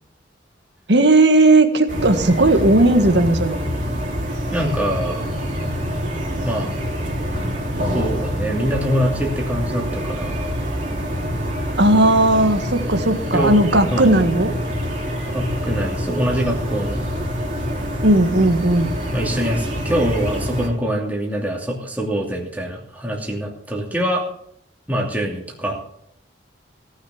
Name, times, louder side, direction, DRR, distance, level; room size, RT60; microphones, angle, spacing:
voice 1, 0.9-3.6 11.8-14.5 18.0-18.9, right 2 dB, 65° right, 7 dB, 1.6 m, -15 dB
sound 1, 1.9-20.7, equal, 45° right, 3.3 m, -26 dB
voice 2, 4.5-5.3 6.4-6.8 7.9-10.6 13.3-13.5 13.9-14.1 15.3-17.0 19.1-24.2 24.9-25.8, equal, 10° right, -2 dB, 2.8 m, -24 dB
17.5 x 6.5 x 7.1 m, 0.68 s
head